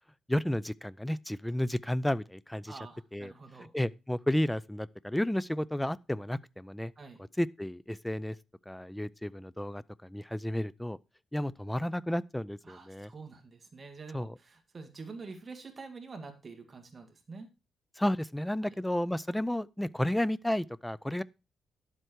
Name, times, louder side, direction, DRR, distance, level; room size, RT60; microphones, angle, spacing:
voice 1, 0.3-2.8 3.1-3.3 3.7-6.9 7.4-8.4 8.7-11.0 11.3-13.1 14.1-14.3 18.0-21.2, left 1 dB, 5° left, 0.4 m, -32 dB
voice 2, 2.7-3.7 7.0-7.2 12.6-17.5 18.6-18.8, right 4 dB, 30° right, 2.0 m, -47 dB
11.5 x 7.9 x 4.6 m
cardioid pair, 120°, 0 cm